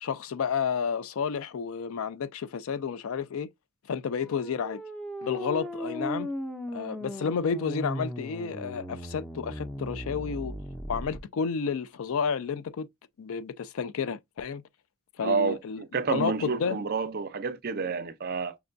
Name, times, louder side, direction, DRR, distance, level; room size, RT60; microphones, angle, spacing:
voice 1, 0.0-3.5 3.9-4.8 5.2-6.3 6.7-10.5 10.9-12.9 13.2-14.6 15.2-16.8, left 6 dB, 65° left, 0.4 m, -31 dB
sound 1, 4.1-11.2, equal, 5° left, 0.5 m, -37 dB
voice 2, 15.2-18.6, right 4 dB, 45° right, 0.5 m, -29 dB
5.9 x 2.2 x 2.5 m
head